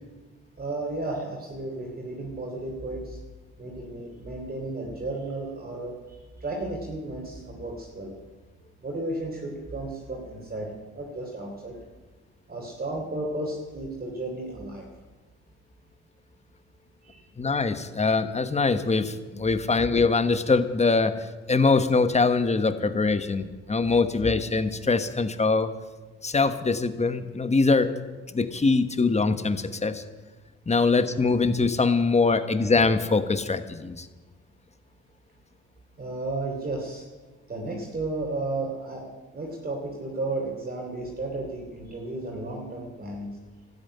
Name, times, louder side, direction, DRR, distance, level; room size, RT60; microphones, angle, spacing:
voice 1, 0.6-3.2 3.6-8.1 8.8-11.7 12.5-14.8 17.0-17.2 30.8-30.9 32.3-32.4 36.0-37.0 37.5-39.0 39.3-43.3, right 2 dB, 30° right, -1 dB, 3.5 m, -33 dB
voice 2, 17.4-21.1 21.5-25.7 26.2-27.9 28.3-30.0 30.7-34.1, left 4 dB, 20° left, 11 dB, 1.2 m, -23 dB
13.0 x 9.4 x 9.9 m, 1.3 s
cardioid pair, 90°, 30 cm